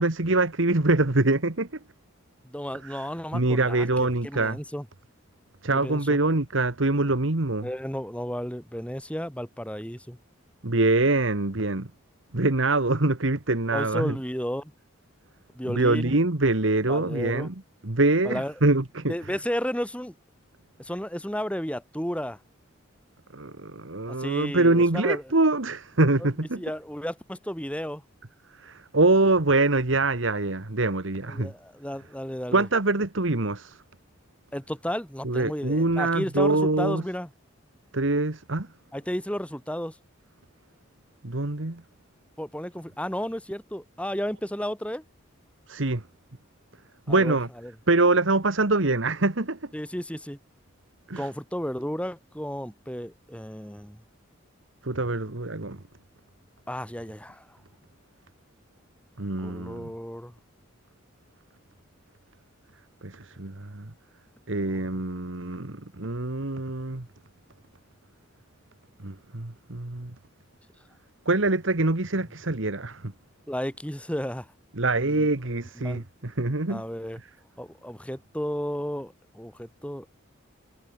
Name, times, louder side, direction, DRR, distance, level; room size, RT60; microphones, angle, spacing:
voice 1, 0.0-1.7 2.9-3.0 3.3-4.6 5.6-7.7 10.6-11.9 12.3-14.2 15.7-17.5 17.8-19.1 23.3-26.6 28.6-31.5 32.5-33.8 35.2-37.0 37.9-38.7 41.2-41.8 45.7-46.0 47.1-47.5 47.9-49.6 51.1-51.3 54.8-55.8 59.2-59.9 63.0-63.9 64.5-67.0 69.0-70.1 71.2-73.1 74.8-76.8, right 2 dB, 65° right, 1.6 m, -24 dB
voice 2, 2.4-4.8 5.7-6.0 7.6-10.2 13.7-14.7 15.5-16.1 16.9-17.5 18.2-18.5 19.1-20.1 20.8-22.4 24.2-25.2 26.2-26.3 26.6-28.0 31.3-32.7 34.5-37.3 38.9-40.0 42.4-45.0 47.1-47.7 49.7-50.4 51.2-54.0 56.7-57.6 59.4-60.3 64.7-64.8 73.5-74.5 75.1-75.3 75.8-76.0 76.7-77.2 77.6-80.1, equal, 5° left, 4.4 m, -33 dB
head